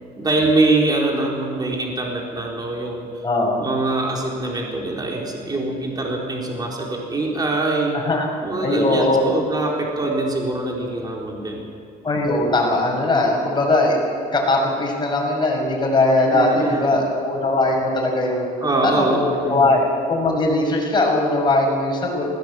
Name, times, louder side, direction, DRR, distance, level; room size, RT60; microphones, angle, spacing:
voice 1, 0.2-3.1 3.6-8.0 8.4-11.7 16.3-17.0 18.6-19.8, right 2 dB, 25° right, -1 dB, 4.1 m, -23 dB
voice 2, 3.2-3.6 7.9-8.3 8.6-9.2 12.0-14.0 14.3-18.5 18.8-22.3, left 2 dB, 25° left, -1 dB, 6.7 m, -20 dB
20.0 x 17.0 x 7.9 m, 2.4 s
cardioid pair, 110°, 17 cm